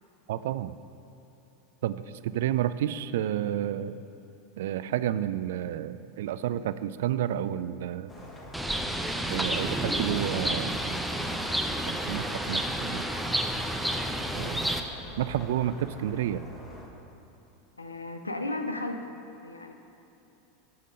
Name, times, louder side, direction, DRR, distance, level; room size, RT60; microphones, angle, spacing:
voice 1, 0.3-0.7 1.8-4.0 4.6-8.1 9.3-11.0 11.9-13.1 14.3-14.7 15.2-16.4, right 11 dB, 60° right, 14 dB, 0.3 m, -30 dB
sound 1, 8.1-16.9, left 1 dB, 25° left, 1.6 m, -45 dB
Bird, 8.5-14.8, right 1 dB, ahead, 0.7 m, -30 dB
voice 2, 17.8-19.2 19.4-19.7, left 2 dB, 85° left, 6 dB, 0.6 m, -34 dB
12.5 x 5.1 x 5.3 m, 2.9 s
figure-of-eight pair, 85°, 0 cm